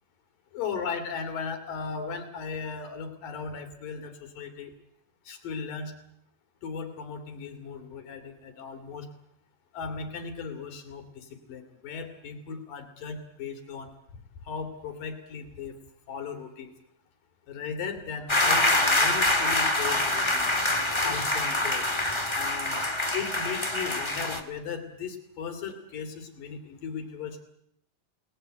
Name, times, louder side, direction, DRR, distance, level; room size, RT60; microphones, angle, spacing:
voice 1, 0.5-4.7 5.3-5.9 6.6-9.1 9.7-13.9 14.5-15.8 16.1-16.7 17.5-20.5 21.0-21.8 22.3-22.8 23.1-27.4, left 5 dB, 80° left, 7 dB, 4.5 m, -37 dB
sound 1, 18.3-24.4, left 2 dB, 15° left, 1.2 m, -25 dB
29.0 x 19.5 x 8.1 m, 0.75 s
omnidirectional pair, 3.8 m